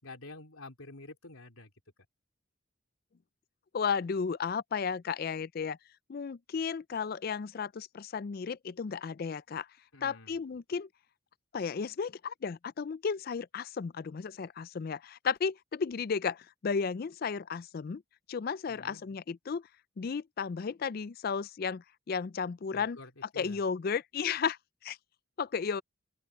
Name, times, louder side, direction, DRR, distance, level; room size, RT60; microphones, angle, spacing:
voice 1, 0.0-1.7 9.9-10.3 18.7-19.0 22.7-23.6, left 2 dB, 85° left, 3.2 m, -49 dB
voice 2, 3.7-5.8 6.1-9.7 10.0-10.9 11.5-18.0 18.3-19.7 20.0-23.0 23.4-25.0 25.4-25.8, left 6 dB, 45° left, 0.4 m, -34 dB
open air
head